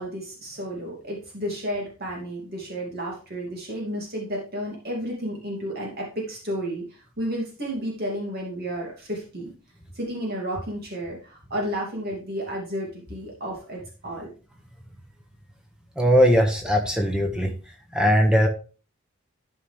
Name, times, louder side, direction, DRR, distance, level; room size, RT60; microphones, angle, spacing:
voice 1, 0.0-9.5 9.9-14.3, equal, 45° right, -2 dB, 2.6 m, -32 dB
voice 2, 16.0-17.5 17.9-18.5, equal, 5° right, 2 dB, 1.5 m, -19 dB
12.5 x 5.7 x 3.4 m, 0.36 s
head